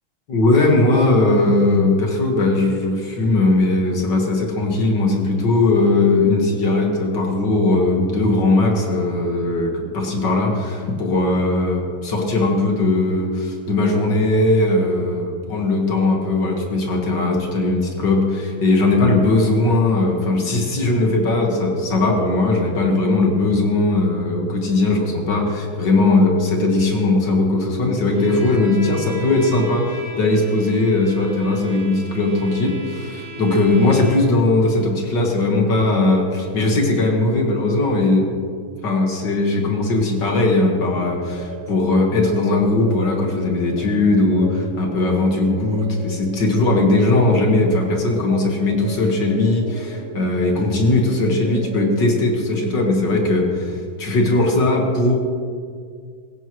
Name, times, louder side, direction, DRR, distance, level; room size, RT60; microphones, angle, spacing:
voice 1, 0.3-38.3 38.8-55.2, left 2 dB, 60° left, 1 dB, 2.4 m, -19 dB
Bowed string instrument, 28.1-34.5, right 1 dB, 30° right, 3.1 m, -37 dB
sound 1, 40.3-52.0, right 6 dB, 80° right, 1.7 m, -36 dB
16.5 x 15.5 x 3.2 m, 2.1 s
omnidirectional pair, 2.2 m